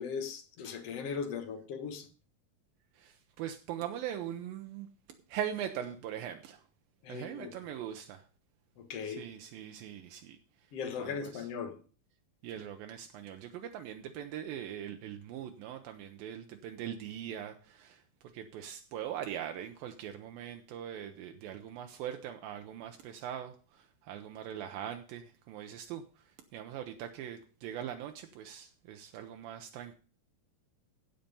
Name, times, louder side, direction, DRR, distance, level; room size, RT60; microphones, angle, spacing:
voice 1, 0.0-2.1 7.0-7.5 8.8-9.2 10.7-11.7, left 6 dB, 55° left, 2.0 m, -38 dB
voice 2, 3.0-4.9 5.3-6.6 7.1-8.2 9.0-10.4 11.0-11.5 12.4-18.0 18.3-30.0, right 10 dB, 80° right, 2.5 m, -41 dB
15.5 x 5.8 x 5.3 m
omnidirectional pair, 4.2 m